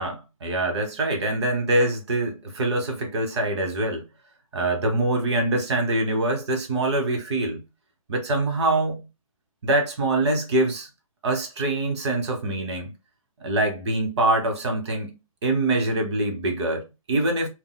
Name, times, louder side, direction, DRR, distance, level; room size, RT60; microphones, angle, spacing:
voice 1, 0.0-4.0 4.5-7.6 8.1-9.1 9.6-10.9 11.2-12.9 13.4-15.1 15.4-17.5, right 2 dB, 50° right, 1.0 m, -24 dB
3.9 x 2.2 x 2.2 m
hypercardioid pair, 180°, 18 cm